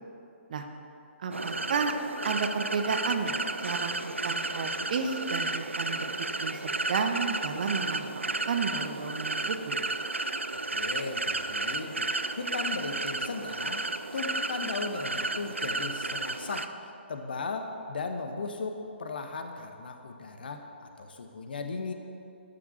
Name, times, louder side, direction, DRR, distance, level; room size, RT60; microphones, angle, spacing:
voice 1, 1.2-1.9 2.2-3.3 3.6-6.1 6.4-9.8, right 5 dB, 45° right, 5 dB, 0.9 m, -32 dB
sound 1, 1.3-16.7, right 2 dB, 80° right, 0.5 m, -33 dB
voice 2, 10.5-21.9, left 4 dB, 50° left, 6 dB, 1.0 m, -37 dB
12.0 x 6.1 x 7.0 m, 2.7 s
figure-of-eight pair, 135°, 6 cm